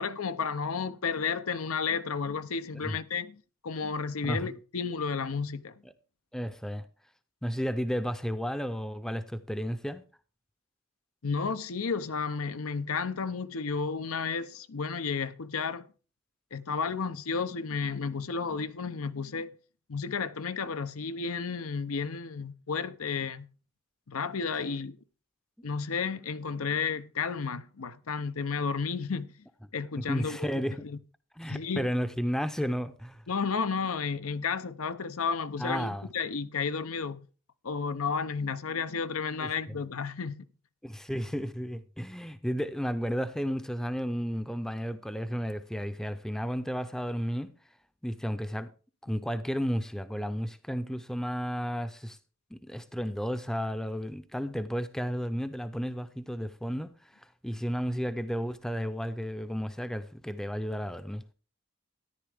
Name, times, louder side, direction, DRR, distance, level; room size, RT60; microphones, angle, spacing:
voice 1, 0.0-5.8 11.2-15.8 16.5-19.5 19.9-23.5 24.1-25.0 25.6-29.4 29.7-31.0 31.5-31.9 33.3-37.2 37.6-40.5, left 5 dB, 90° left, 0.7 m, -32 dB
voice 2, 4.2-4.6 6.3-6.9 7.4-10.0 25.6-25.7 30.0-30.8 31.4-33.2 35.6-36.1 39.4-39.8 40.8-47.5 48.0-48.7 49.0-52.2 52.5-61.2, equal, 5° left, 0.5 m, -33 dB
13.5 x 10.5 x 3.5 m
head